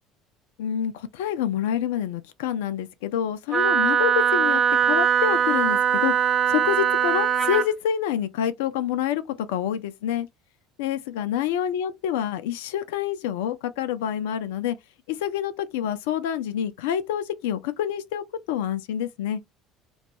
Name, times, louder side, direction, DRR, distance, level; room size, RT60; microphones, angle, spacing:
voice 1, 0.6-6.1 6.5-10.3 10.8-14.8 15.1-19.4, left 10 dB, 65° left, 0.3 m, -27 dB
Wind instrument woodwind instrument, 3.5-7.7, right 7 dB, 30° right, 0.5 m, -21 dB
2.2 x 2.2 x 2.7 m
figure-of-eight pair, 60°, 0 cm